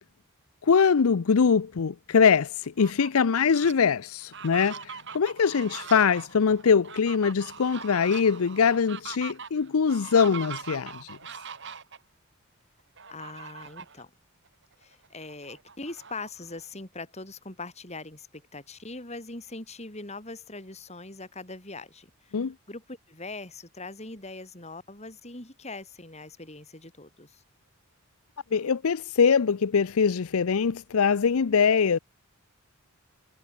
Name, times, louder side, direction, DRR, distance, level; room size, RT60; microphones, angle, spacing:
voice 1, 0.6-11.2 22.3-22.5 28.5-32.0, left 6 dB, 70° left, 0.5 m, -23 dB
Fowl, 2.6-3.7 4.2-12.0 13.0-14.0 14.5-14.6 14.9-16.7, right 6 dB, 55° right, 4.2 m, -42 dB
voice 2, 13.1-14.1 14.8-27.4, left 3 dB, 30° left, 4.6 m, -41 dB
head